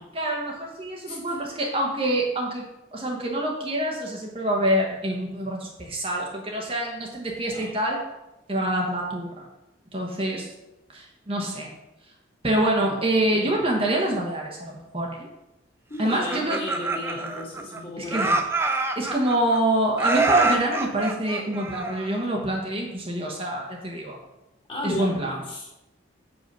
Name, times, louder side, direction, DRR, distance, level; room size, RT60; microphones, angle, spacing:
voice 1, 0.1-2.6 2.9-8.0 8.5-9.5 9.9-10.5 10.9-11.7 12.4-15.3 16.0-16.6 18.0-18.4 19.0-24.2 24.8-25.4, right 1 dB, 30° right, -1 dB, 1.0 m, -26 dB
voice 2, 1.1-1.5 7.5-7.7 12.8-13.0 13.2-13.5 15.9-18.4 24.7-25.2 25.5-25.7, left 1 dB, 25° left, -4 dB, 2.2 m, -34 dB
Laughter, 16.1-17.8 18.1-19.6 20.0-22.2, right 3 dB, 10° right, 0.5 m, -25 dB
7.3 x 5.2 x 5.3 m, 0.93 s
head